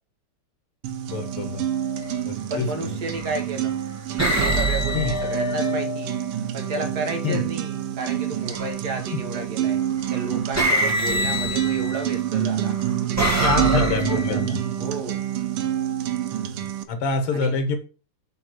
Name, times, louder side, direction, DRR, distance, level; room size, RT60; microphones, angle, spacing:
sound 1, 0.8-16.8, right 11 dB, 85° right, 1.7 m, -27 dB
voice 1, 1.1-1.6 2.3-2.9 4.9-5.2 7.2-7.4 9.1-9.2 11.1-11.3 13.4-14.6 16.4-17.8, left 4 dB, 80° left, 6 dB, 2.2 m, -26 dB
sound 2, 1.9-2.2 3.1-3.6 4.2-6.2 8.4-9.0 10.0-10.2 10.6-12.2 12.8-14.5, right 1 dB, 10° right, 1.3 m, -25 dB
voice 2, 2.5-3.8 4.1-6.2 6.5-9.8 10.1-12.7 13.1-15.2 17.3-17.6, right 3 dB, 50° right, 3 dB, 1.9 m, -32 dB
7.8 x 3.5 x 5.8 m, 0.36 s
omnidirectional pair, 2.4 m